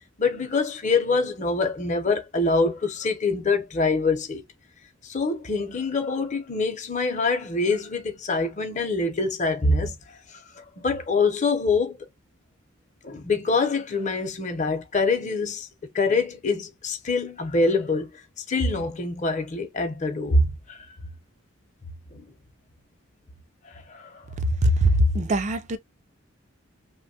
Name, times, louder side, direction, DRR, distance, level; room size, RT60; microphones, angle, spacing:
voice 1, 0.2-4.4 5.0-12.1 13.0-15.7 15.9-20.8 22.1-22.3 23.6-24.3, left 3 dB, 35° left, 0.7 m, -25 dB
voice 2, 24.4-25.8, equal, 35° right, 0.4 m, -21 dB
3.0 x 2.2 x 2.7 m
head